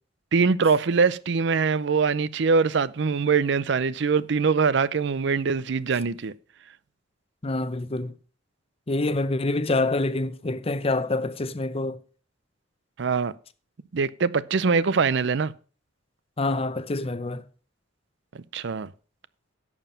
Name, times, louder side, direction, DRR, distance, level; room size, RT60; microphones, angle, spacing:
voice 1, 0.3-6.3 13.0-13.3 13.9-15.5 18.3-18.9, right 5 dB, 65° right, 0.5 m, -23 dB
voice 2, 7.4-8.1 8.9-12.0 16.4-17.4, left 2 dB, 30° left, 0.7 m, -26 dB
11.0 x 7.2 x 5.6 m
head